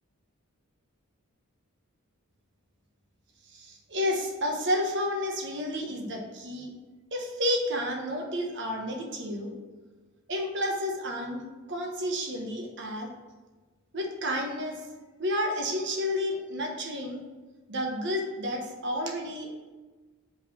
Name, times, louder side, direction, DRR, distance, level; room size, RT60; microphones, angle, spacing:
voice 1, 3.5-6.7 7.1-9.5 10.3-11.4 11.7-13.1 13.9-14.8 15.2-17.2 17.7-19.5, left 1 dB, 55° right, 2 dB, 1.0 m, -31 dB
5.1 x 4.0 x 5.5 m, 1.3 s
head